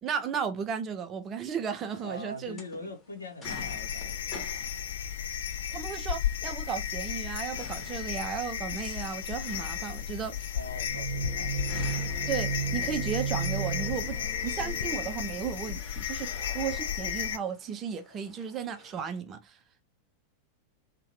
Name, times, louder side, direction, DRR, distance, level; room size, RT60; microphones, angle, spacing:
voice 1, 0.0-2.6 5.7-10.4 12.3-19.6, right 7 dB, 30° right, 0.4 m, -34 dB
sound 1, 1.7-19.2, left 2 dB, 20° left, 1.0 m, -51 dB
voice 2, 2.0-4.3 10.5-11.5, left 1 dB, 80° left, 0.7 m, -42 dB
sound 2, 3.4-17.4, left 9 dB, 60° left, 0.3 m, -34 dB
sound 3, 10.7-15.3, right 7 dB, 45° right, 0.8 m, -35 dB
2.7 x 2.1 x 2.7 m
figure-of-eight pair, 90°, 0 cm